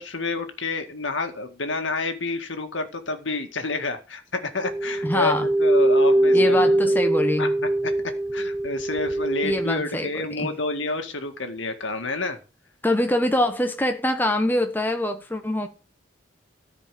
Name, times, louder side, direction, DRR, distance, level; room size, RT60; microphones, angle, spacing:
voice 1, 0.0-6.9 7.4-7.9 8.3-12.4, left 3 dB, 75° left, 2.0 m, -29 dB
sound 1, 4.6-9.7, right 1 dB, 10° right, 0.7 m, -22 dB
voice 2, 5.0-5.5 6.3-7.5 9.4-10.5 12.8-15.7, left 1 dB, 10° left, 1.1 m, -24 dB
14.0 x 5.1 x 7.7 m
head